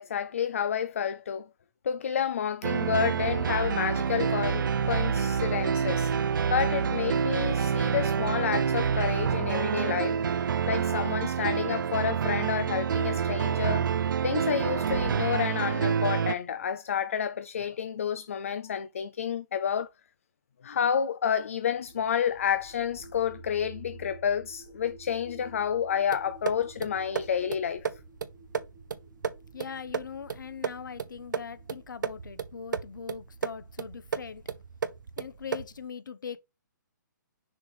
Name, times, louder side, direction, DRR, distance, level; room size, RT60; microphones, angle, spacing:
voice 1, 0.0-1.5 1.8-6.1 6.5-10.2 10.7-13.9 14.2-19.9 20.6-27.9, left 8 dB, 45° left, 0.4 m, -30 dB
sound 1, 2.6-16.3, right 7 dB, 90° right, 0.4 m, -27 dB
sound 2, 21.7-33.5, right 1 dB, 15° right, 0.9 m, -51 dB
sound 3, 26.1-35.8, right 6 dB, 75° right, 0.8 m, -36 dB
voice 2, 29.5-34.4 35.2-36.4, left 7 dB, 80° left, 0.9 m, -41 dB
6.1 x 3.4 x 4.7 m
hypercardioid pair, 180°, 10 cm